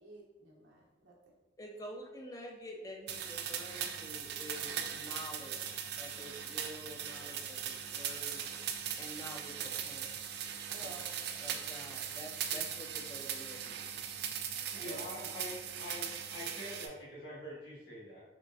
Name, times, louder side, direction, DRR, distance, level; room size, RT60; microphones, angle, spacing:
voice 1, 0.0-1.1 10.7-11.4 14.7-15.3, right 1 dB, 85° right, -2 dB, 0.9 m, -52 dB
voice 2, 1.6-8.4 9.0-10.2 10.8-10.9 11.4-14.1, equal, 20° left, 1 dB, 0.4 m, -48 dB
sound 1, 3.1-16.9, right 8 dB, 60° right, 0.3 m, -39 dB
voice 3, 14.7-18.2, left 1 dB, 65° left, -8 dB, 1.4 m, -45 dB
3.8 x 3.1 x 2.3 m, 1.1 s
head